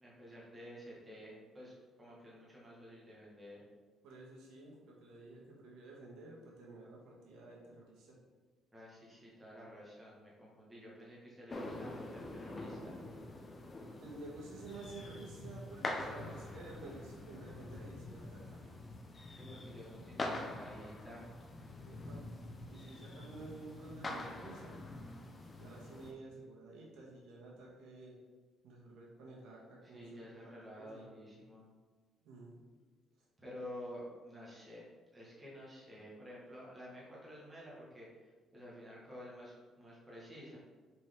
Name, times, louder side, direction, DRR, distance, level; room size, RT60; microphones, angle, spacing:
voice 1, 0.0-3.6 8.7-12.9 19.4-21.3 29.8-31.6 33.4-34.8 35.1-40.6, equal, 15° right, -5 dB, 1.8 m, -51 dB
voice 2, 4.0-8.2 14.0-18.8 21.7-22.2 22.7-24.8 25.5-28.2 28.6-31.4 32.2-32.6, right 2 dB, 85° right, -3 dB, 1.6 m, -51 dB
sound 1, 11.5-26.1, left 2 dB, 25° left, 0.7 m, -45 dB
6.0 x 4.8 x 3.7 m, 1.4 s
cardioid pair, 145°, 0 cm